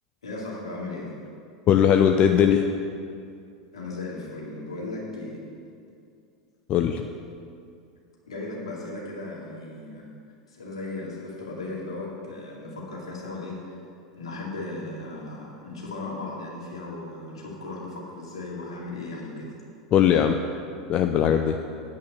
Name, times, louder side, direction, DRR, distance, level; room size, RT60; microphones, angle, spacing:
voice 1, 0.2-1.1 3.7-5.4 8.3-10.1 10.5-13.8 14.2-19.6, left 2 dB, 75° left, -4 dB, 2.4 m, -36 dB
voice 2, 1.7-2.6 6.7-7.0 19.9-20.4 20.9-21.6, left 9 dB, 35° left, 5 dB, 0.5 m, -19 dB
8.7 x 5.6 x 7.9 m, 2.4 s
figure-of-eight pair, 85°, 3 cm